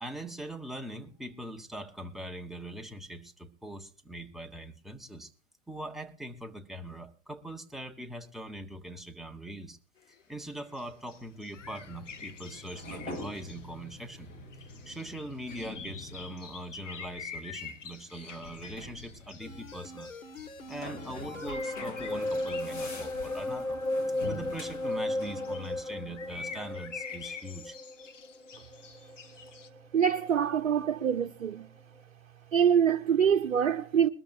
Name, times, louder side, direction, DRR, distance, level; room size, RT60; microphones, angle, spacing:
voice 1, 0.0-5.3 5.7-9.8 10.3-14.3 14.8-20.1 20.7-23.8 24.2-27.8, right 1 dB, ahead, 0.6 m, -42 dB
sound 1, 10.0-23.2 24.2-25.9 26.1-29.7, left 6 dB, 65° left, 1.6 m, -47 dB
sound 2, 11.5-26.7, left 2 dB, 20° left, 2.9 m, -46 dB
sound 3, 19.4-29.8 30.2-30.3, left 1 dB, 85° left, 1.7 m, -36 dB
voice 2, 29.9-31.7 32.5-34.1, right 8 dB, 65° right, 0.9 m, -25 dB
21.5 x 13.0 x 2.5 m
figure-of-eight pair, 115°, 40 cm